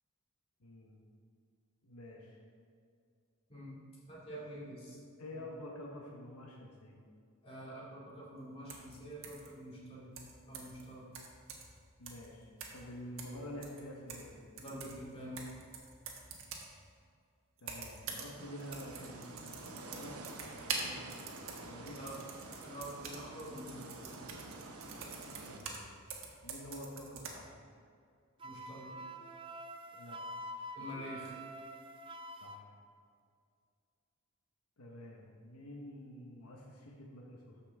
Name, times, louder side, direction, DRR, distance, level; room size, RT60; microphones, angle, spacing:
voice 1, 0.6-1.0 1.8-2.4 5.2-7.0 12.0-14.4 17.6-22.4 25.4-25.8 26.4-27.5 29.9-30.2 32.4-32.7 34.8-37.6, left 1 dB, 85° left, -1 dB, 1.1 m, -49 dB
voice 2, 4.1-5.0 5.3-5.4 7.4-10.1 10.5-11.1 14.6-15.5 21.9-22.2 22.6-24.2 28.4-28.9 30.7-31.3, equal, 25° left, -7 dB, 2.5 m, -47 dB
sound 1, 8.7-8.9 9.2-9.5 10.2-10.8 11.1-11.8 12.1-12.3 12.6-12.9 13.2-14.3 14.6-16.7 17.6-18.3 18.6-25.8 26.1-27.3, right 5 dB, 65° right, 1.3 m, -45 dB
sound 2, 18.4-25.6, right 2 dB, 85° right, 0.9 m, -49 dB
Wind instrument woodwind instrument, 28.4-32.6, equal, 25° right, 0.4 m, -46 dB
13.5 x 5.6 x 3.6 m, 2.3 s
head